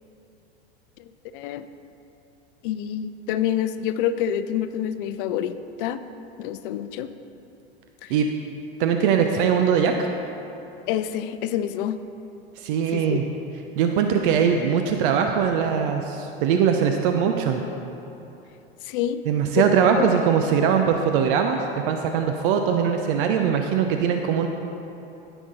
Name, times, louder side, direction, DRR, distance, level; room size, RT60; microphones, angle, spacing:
voice 1, 1.0-1.7 2.6-6.0 6.4-7.1 8.0-8.1 10.9-12.0 12.9-13.2 18.8-19.2 19.6-19.7 19.9-20.1, left 10 dB, 55° left, 11 dB, 0.6 m, -27 dB
voice 2, 8.8-10.1 12.6-13.2 13.8-17.6 19.3-21.6 21.9-24.5, right 7 dB, 55° right, 4 dB, 0.8 m, -21 dB
16.5 x 6.1 x 4.0 m, 3.0 s
hypercardioid pair, 90°, 33 cm